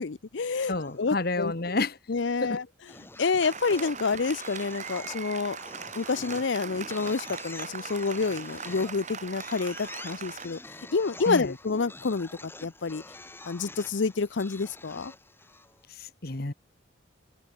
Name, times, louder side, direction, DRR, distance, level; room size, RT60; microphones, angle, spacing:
voice 1, 0.0-1.5 2.1-2.6 3.2-5.6 6.0-10.6 10.9-13.0 13.5-15.1, left 4 dB, 65° left, 0.6 m, -28 dB
sound 1, 0.6-1.3 2.9-15.8, left 2 dB, 10° left, 4.3 m, -47 dB
voice 2, 0.7-2.0 2.4-2.6 11.3-11.5 15.9-16.5, left 2 dB, 50° left, 1.4 m, -30 dB
Applause, 3.4-10.5, right 6 dB, 35° right, 4.7 m, -40 dB
open air
head